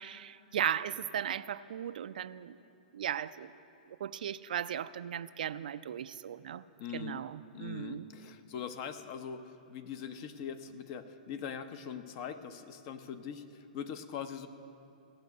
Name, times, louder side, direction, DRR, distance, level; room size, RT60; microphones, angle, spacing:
voice 1, 0.0-2.6 2.9-3.5 3.9-6.6 6.9-8.1, right 9 dB, 75° right, 13 dB, 0.4 m, -37 dB
voice 2, 6.8-7.2 7.5-14.5, left 7 dB, 40° left, 10 dB, 0.8 m, -42 dB
16.0 x 6.2 x 9.3 m, 2.8 s
hypercardioid pair, 140°, 5 cm